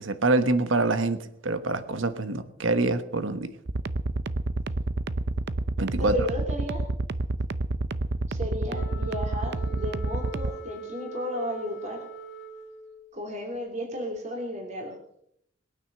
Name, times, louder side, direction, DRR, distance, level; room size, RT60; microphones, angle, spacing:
voice 1, 0.0-3.5 5.8-6.1, right 2 dB, 80° right, 11 dB, 1.3 m, -25 dB
sound 1, 3.7-10.6, right 2 dB, 55° right, 0.6 m, -28 dB
voice 2, 6.0-6.8 8.3-12.1 13.1-15.0, equal, 35° right, 1 dB, 3.1 m, -33 dB
Wind instrument woodwind instrument, 8.7-13.1, right 4 dB, 60° left, 1.8 m, -42 dB
21.0 x 9.6 x 6.8 m, 0.72 s
head